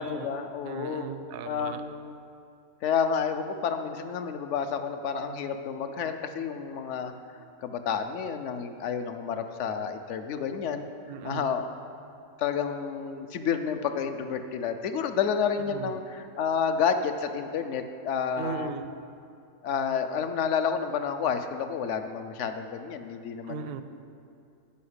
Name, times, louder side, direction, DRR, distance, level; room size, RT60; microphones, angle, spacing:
voice 1, 0.0-1.1 1.4-2.2 2.8-7.1 7.6-10.9 11.2-11.7 12.4-18.7 19.6-23.7, left 7 dB, 65° left, 8 dB, 0.9 m, -30 dB
voice 2, 0.6-1.8 11.1-11.5 15.7-15.9 18.4-18.9 23.5-23.8, right 6 dB, 60° right, 10 dB, 0.6 m, -37 dB
8.5 x 5.7 x 8.0 m, 2.5 s
omnidirectional pair, 1.4 m